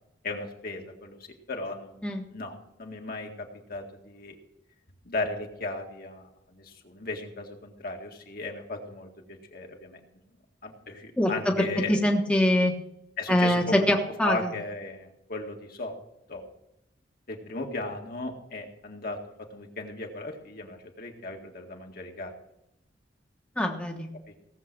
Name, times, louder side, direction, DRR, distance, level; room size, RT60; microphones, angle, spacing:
voice 1, 0.2-1.2 1.5-1.9 2.3-4.4 5.1-10.0 10.6-12.0 13.2-13.8 14.2-15.9 16.3-16.4 17.3-19.2 19.5-22.3 24.3-24.4, left 2 dB, 50° left, 2 dB, 1.9 m, -36 dB
voice 2, 11.2-12.7 13.3-14.5 23.6-24.1, left 1 dB, 5° left, 1 dB, 1.2 m, -24 dB
17.5 x 7.5 x 6.2 m, 0.84 s
head